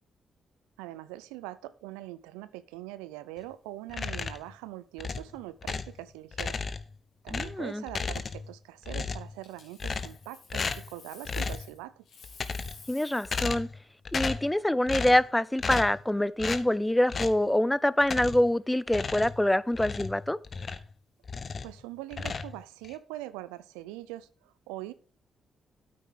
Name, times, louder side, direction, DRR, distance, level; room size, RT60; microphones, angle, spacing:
voice 1, 0.8-6.6 7.2-12.0 21.6-24.9, right 16 dB, 85° right, 0.5 m, -42 dB
sound 1, 3.9-4.5 5.0-6.0 6.3-7.0 7.3-8.6 8.8-9.4 9.8-10.2 10.5-10.9 11.3-11.7 12.2-12.9 13.2-13.8 14.1-14.5 14.9-15.3 15.6-16.0 16.4-16.7 17.1-17.4 18.0-18.5 18.9-20.9 21.2-21.8 22.1-23.0, left 5 dB, 50° left, 1.0 m, -34 dB
voice 2, 7.3-7.8 12.9-13.7 14.1-20.4, left 1 dB, 10° left, 0.6 m, -25 dB
Coin (dropping), 9.4-11.8 12.0-13.5 16.3-16.5, left 5 dB, 75° left, 3.3 m, -52 dB
9.1 x 8.5 x 3.8 m
hypercardioid pair, 45°, 0 cm